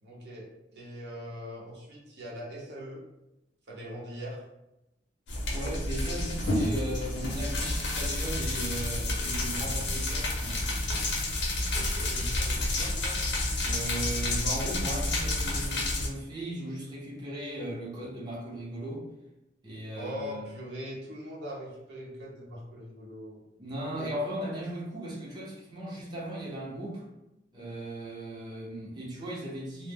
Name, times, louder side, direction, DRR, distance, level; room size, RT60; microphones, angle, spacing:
voice 1, 0.0-3.0 3.7-4.4 11.7-13.2 20.0-23.4, equal, 70° right, -4 dB, 0.7 m, -41 dB
sound 1, 5.3-16.1, left 2 dB, 75° left, 0.6 m, -30 dB
voice 2, 5.5-10.8 13.6-19.1 19.6-20.5 23.6-27.0 27.5-29.9, right 1 dB, 25° right, -6 dB, 0.6 m, -37 dB
2.0 x 2.0 x 3.4 m, 0.91 s
head